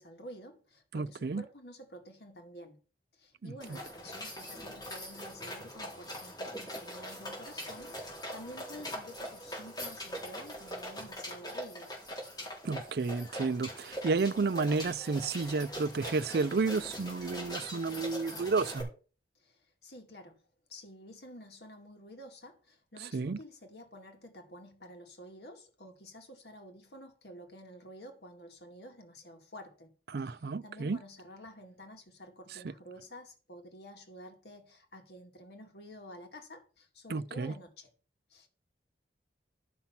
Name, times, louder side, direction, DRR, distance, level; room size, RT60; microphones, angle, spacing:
voice 1, 0.0-2.8 3.1-11.9 19.4-20.4 20.7-29.9 30.2-37.9 38.3-38.5, equal, 65° left, 2.1 m, -50 dB
voice 2, 0.9-1.4 3.4-3.5 12.6-18.9 23.0-23.4 30.1-31.0 37.1-37.5, right 4 dB, 60° right, 0.4 m, -31 dB
sound 1, 3.6-18.8, equal, 20° left, 4.1 m, -42 dB
11.5 x 5.7 x 5.8 m
head